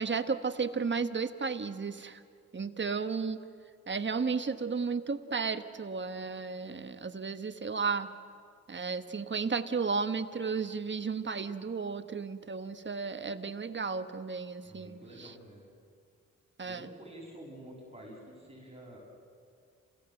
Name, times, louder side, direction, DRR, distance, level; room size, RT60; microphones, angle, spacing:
voice 1, 0.0-2.2 2.5-3.4 3.9-8.1 8.7-15.3 16.6-16.9, right 5 dB, 35° right, 9 dB, 1.3 m, -33 dB
voice 2, 14.6-15.6 16.6-19.0, right 1 dB, 20° right, -3 dB, 6.9 m, -49 dB
28.5 x 16.5 x 7.8 m, 2.2 s
cardioid pair, 60°, 30 cm